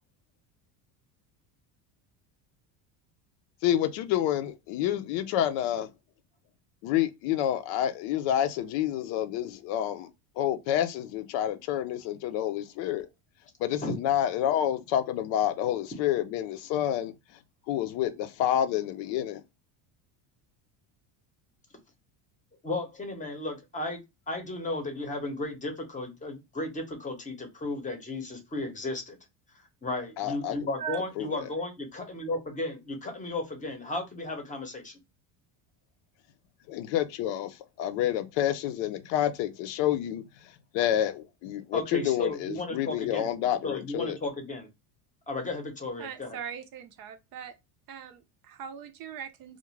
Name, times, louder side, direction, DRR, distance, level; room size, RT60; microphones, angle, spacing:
voice 1, 3.6-5.9 6.8-10.1 10.4-13.1 13.6-17.1 17.7-19.4 30.2-30.6 31.2-31.5 36.7-44.2, left 11 dB, 70° left, 0.5 m, -28 dB
voice 2, 22.6-29.2 29.5-35.0 41.7-43.3 43.6-44.7 45.3-46.4, left 2 dB, 15° left, 0.7 m, -34 dB
voice 3, 46.0-47.5 47.9-49.6, right 8 dB, 50° right, 0.5 m, -40 dB
2.4 x 2.1 x 3.0 m
supercardioid pair, 120°, 47 cm